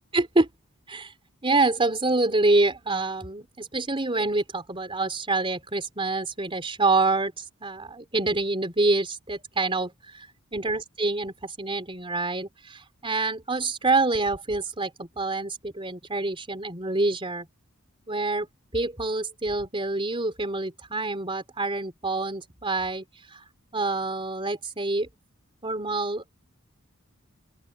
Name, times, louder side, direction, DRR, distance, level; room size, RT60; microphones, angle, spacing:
voice 1, 0.1-0.5 0.9-1.1 1.4-10.3 10.5-17.5 18.1-18.5 18.7-23.4 23.7-25.1 25.6-26.3, right 2 dB, 25° right, 3.6 m, -26 dB
open air
head